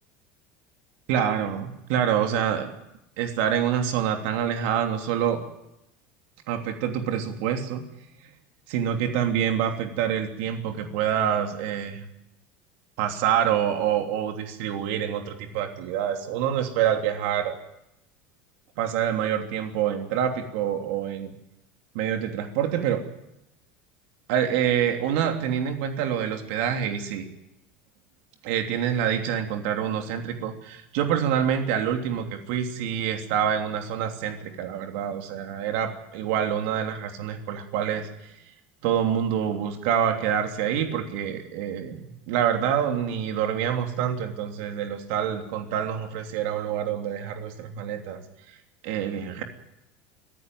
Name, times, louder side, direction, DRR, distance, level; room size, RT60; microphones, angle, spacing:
voice 1, 1.1-2.7 3.2-5.4 6.5-7.8 8.7-12.0 13.0-17.6 18.8-21.3 21.9-23.0 24.3-27.3 28.4-38.3 38.8-48.2 48.8-49.4, right 9 dB, 70° right, 5 dB, 3.0 m, -26 dB
24.5 x 15.0 x 9.3 m, 0.84 s
supercardioid pair, 145°, 6 cm